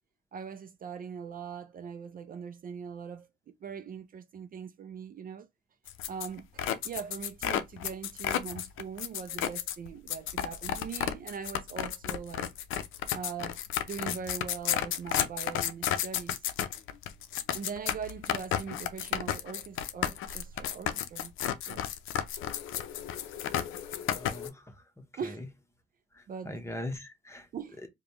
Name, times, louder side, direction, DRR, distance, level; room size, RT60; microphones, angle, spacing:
voice 1, 0.3-5.5 6.1-12.5 13.1-13.6 13.8-16.5 17.5-21.3 21.7-21.9 25.2-25.4 26.3-26.6 27.5-27.8, right 7 dB, 45° right, 0.4 m, -41 dB
sound 1, 5.9-24.5, left 10 dB, 80° left, 0.5 m, -32 dB
voice 2, 24.1-24.7 26.1-27.5, left 1 dB, 15° left, 0.9 m, -40 dB
5.0 x 2.2 x 2.9 m
cardioid pair, 90°, 20 cm